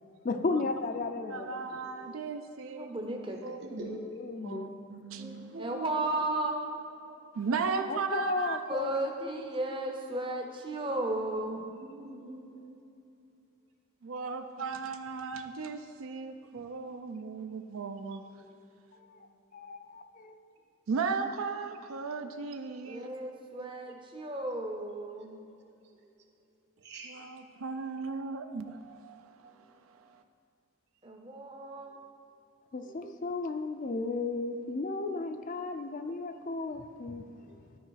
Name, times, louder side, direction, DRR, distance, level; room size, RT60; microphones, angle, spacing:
voice 1, 0.2-1.6 3.7-4.7 7.9-8.9 19.0-19.1 19.5-20.4 32.7-37.2, left 3 dB, 40° left, 7 dB, 0.4 m, -34 dB
voice 2, 1.3-2.9 3.4-4.0 4.4-5.6 7.3-8.6 14.0-18.2 20.9-23.1 23.6-23.7 27.0-30.2, right 4 dB, 80° right, 7 dB, 0.4 m, -36 dB
voice 3, 2.7-3.4 5.6-6.6 8.7-11.8 22.8-25.3 31.0-31.9, right 1 dB, 25° right, 2 dB, 0.6 m, -34 dB
voice 4, 5.1-6.4 11.7-12.8 17.9-18.8 26.8-27.1 37.5-37.6, right 3 dB, 50° right, 0 dB, 1.4 m, -46 dB
12.5 x 4.9 x 4.6 m, 2.6 s
head